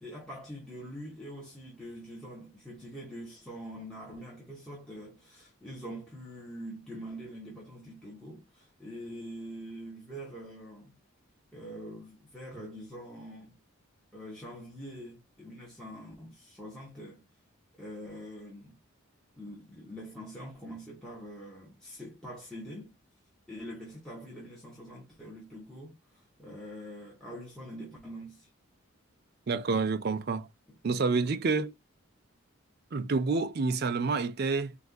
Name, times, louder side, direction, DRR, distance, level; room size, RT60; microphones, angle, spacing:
voice 1, 0.0-10.9 11.5-13.6 14.1-17.2 17.8-18.8 19.4-22.9 23.5-28.5 31.2-31.4, equal, ahead, 1.1 m, -44 dB
voice 2, 29.5-30.5 30.8-31.7 32.9-34.8, right 4 dB, 50° right, 0.4 m, -28 dB
4.3 x 2.5 x 2.4 m
head